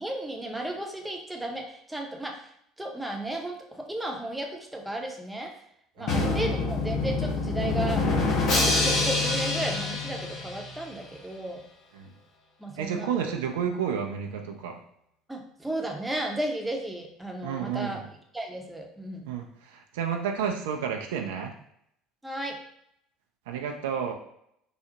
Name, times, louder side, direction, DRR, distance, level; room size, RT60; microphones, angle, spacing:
voice 1, 0.0-2.5 2.8-5.5 6.0-8.1 8.4-11.6 12.6-13.1 15.3-18.0 18.3-19.3 22.2-22.6, right 1 dB, 10° right, 1 dB, 0.6 m, -34 dB
Drum, 6.1-10.9, left 3 dB, 55° left, 0.9 m, -26 dB
voice 2, 12.8-14.8 17.4-18.1 19.3-21.5 23.5-24.1, right 7 dB, 75° right, 3 dB, 0.4 m, -31 dB
3.9 x 2.0 x 2.7 m, 0.73 s
hypercardioid pair, 65°, 0 cm